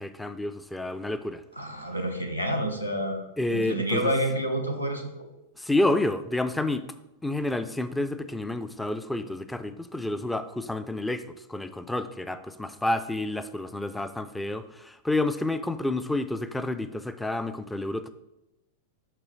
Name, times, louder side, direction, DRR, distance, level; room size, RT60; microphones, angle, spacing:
voice 1, 0.0-1.4 3.4-4.1 5.6-6.9 7.2-18.1, left 2 dB, 5° left, 11 dB, 0.3 m, -29 dB
voice 2, 1.6-5.3, right 1 dB, 85° left, 4 dB, 0.8 m, -29 dB
6.0 x 5.9 x 3.0 m, 0.92 s
figure-of-eight pair, 95°, 0 cm